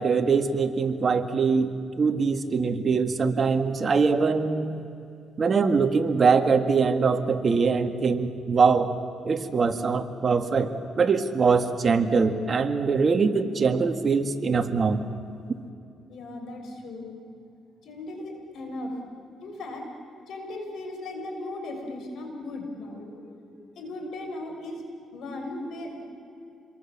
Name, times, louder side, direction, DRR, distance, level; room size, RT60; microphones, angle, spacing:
voice 1, 0.0-1.7 2.0-4.8 5.4-8.9 9.2-10.7 11.0-15.0, right 5 dB, 40° right, 7 dB, 1.9 m, -23 dB
voice 2, 16.1-17.2 17.8-18.9 19.4-19.8 20.3-24.8 25.1-26.0, left 2 dB, 70° left, 3 dB, 6.2 m, -37 dB
28.5 x 23.0 x 7.4 m, 2.6 s
cardioid pair, 90°, 0 cm